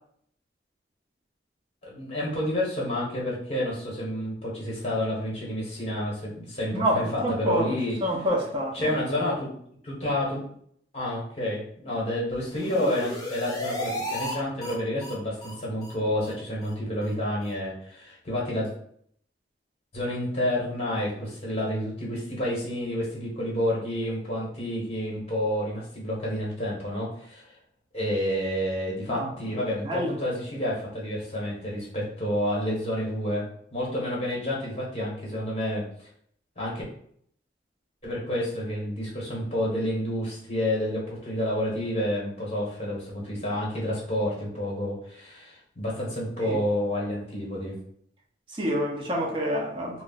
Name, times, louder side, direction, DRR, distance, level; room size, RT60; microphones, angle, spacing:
voice 1, 1.8-7.9 8.7-9.5 9.8-10.5 10.9-18.7 19.9-27.5 27.9-33.4 33.7-36.1 36.6-36.8 38.0-47.7, left 1 dB, 35° left, 1.1 m, -29 dB
voice 2, 6.7-8.9 29.1-29.6 29.8-30.1 46.4-46.6 48.5-50.0, equal, 30° right, 0.6 m, -28 dB
sound 1, 12.3-14.3 14.6-14.7 15.0-15.1 15.4-15.5 15.8-15.9 16.2-16.3 16.6-16.7 17.0-17.1 17.4-17.5, equal, 20° left, 0.6 m, -34 dB
2.4 x 2.2 x 3.9 m
head